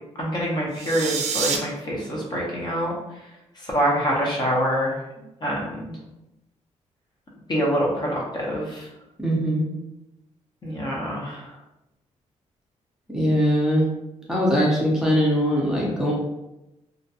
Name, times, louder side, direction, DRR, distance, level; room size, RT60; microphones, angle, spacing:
voice 1, 0.2-2.9 3.5-5.0 5.4-5.9 7.5-8.9 10.6-11.5, equal, 35° left, -3 dB, 0.7 m, -25 dB
sound 1, 0.7-1.6, right 6 dB, 65° right, 0.4 m, -27 dB
voice 2, 9.2-9.7 13.1-13.9 14.3-16.1, equal, 5° right, -5 dB, 0.6 m, -21 dB
2.4 x 2.2 x 2.6 m, 0.93 s
cardioid pair, 125°, 12 cm